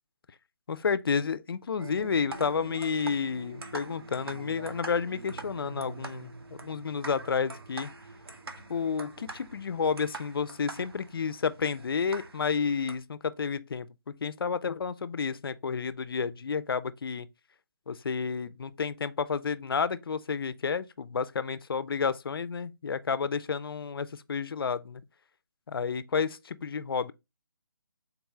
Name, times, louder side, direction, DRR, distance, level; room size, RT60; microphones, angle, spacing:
voice 1, 0.7-6.3 6.6-7.9 8.7-17.3 17.9-25.0 25.7-27.1, left 6 dB, 70° left, 0.4 m, -31 dB
sound 1, 1.8-13.0, right 2 dB, 85° right, 0.9 m, -43 dB
3.9 x 2.3 x 4.1 m
hypercardioid pair, 170°, 12 cm